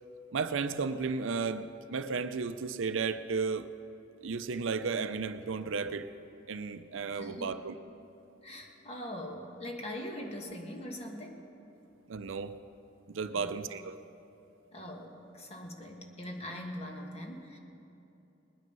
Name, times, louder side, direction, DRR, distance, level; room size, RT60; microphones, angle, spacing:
voice 1, 0.3-3.7 4.2-6.1 6.5-7.7 12.1-12.6 13.1-14.0, right 5 dB, 70° right, 11 dB, 0.5 m, -34 dB
voice 2, 7.2-7.6 8.4-11.4 13.3-13.5 14.7-17.6, left 1 dB, 30° left, 2 dB, 1.4 m, -42 dB
20.0 x 9.4 x 5.4 m, 2.9 s
head